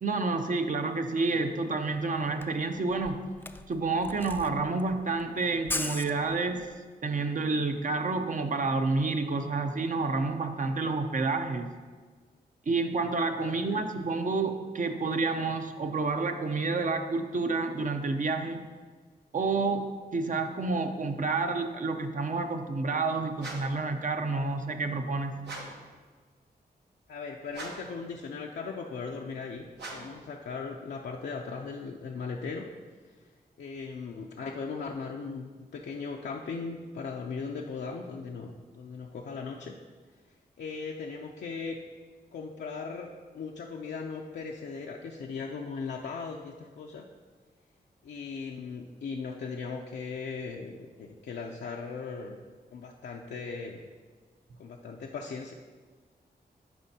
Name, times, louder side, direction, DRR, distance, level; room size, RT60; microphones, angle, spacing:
voice 1, 0.0-3.2 3.7-6.7 7.0-11.7 12.7-18.6 19.3-25.4, right 3 dB, 50° right, 6 dB, 0.6 m, -29 dB
Camera, 1.9-2.0 2.2-6.8, left 2 dB, 10° left, 0.3 m, -38 dB
voice 2, 13.3-13.9 27.1-32.7 33.6-39.7 40.6-41.8 42.3-43.1 43.3-47.1 48.0-52.4 52.7-53.8 54.6-55.5, left 5 dB, 80° left, -1 dB, 0.5 m, -38 dB
sound 1, 23.4-23.9 25.4-25.9 27.5-28.0 29.7-30.2, right 2 dB, 80° right, 1.1 m, -42 dB
11.0 x 4.4 x 2.8 m, 1.5 s
cardioid pair, 70°, 17 cm